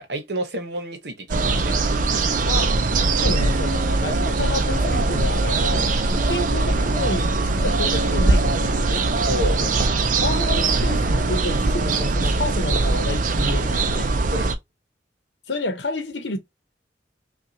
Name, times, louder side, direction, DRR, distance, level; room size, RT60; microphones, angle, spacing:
voice 1, 0.0-1.8 2.5-2.6 9.3-9.6 14.3-14.6, right 1 dB, 65° right, 1.1 m, -29 dB
sound 1, 1.3-14.5, right 3 dB, 50° right, 0.6 m, -21 dB
voice 2, 3.2-9.1 9.4-9.7 10.2-14.1 15.5-16.4, left 2 dB, 85° left, 0.9 m, -30 dB
5.6 x 2.4 x 2.8 m
head